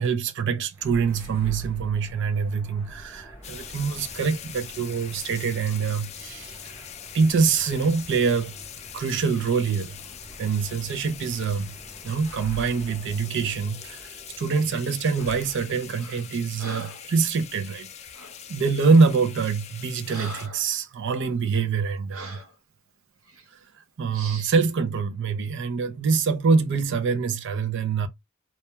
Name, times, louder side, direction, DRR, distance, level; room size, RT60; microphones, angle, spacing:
voice 1, 0.0-6.9 7.1-8.5 8.9-10.0 10.4-11.7 12.0-17.9 18.5-22.4 23.5-23.6 24.0-28.1, right 5 dB, 60° right, 0.4 m, -25 dB
sound 1, 0.7-15.9, equal, 10° right, 0.9 m, -45 dB
sound 2, 3.4-20.5, left 9 dB, 30° left, 0.3 m, -43 dB
Breathing, 16.0-16.3 16.6-17.1 18.1-18.4 19.1-19.3 19.7-20.7 21.2-21.3 22.1-22.5 23.3-23.5 24.1-24.6, right 1 dB, 75° right, 0.8 m, -41 dB
2.2 x 2.2 x 2.9 m
head